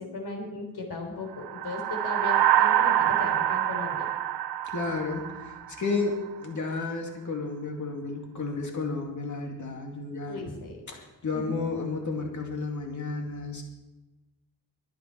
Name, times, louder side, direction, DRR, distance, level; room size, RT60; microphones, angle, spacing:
voice 1, 0.0-4.1 10.3-10.8 11.3-11.7, left 2 dB, 80° left, 3 dB, 3.8 m, -37 dB
sound 1, 1.4-6.0, right 11 dB, 90° right, 0.6 m, -25 dB
voice 2, 4.6-10.4 10.9-13.6, left 3 dB, 50° left, 1 dB, 2.4 m, -32 dB
22.5 x 9.1 x 4.6 m, 1.1 s
wide cardioid pair, 170°, 38 cm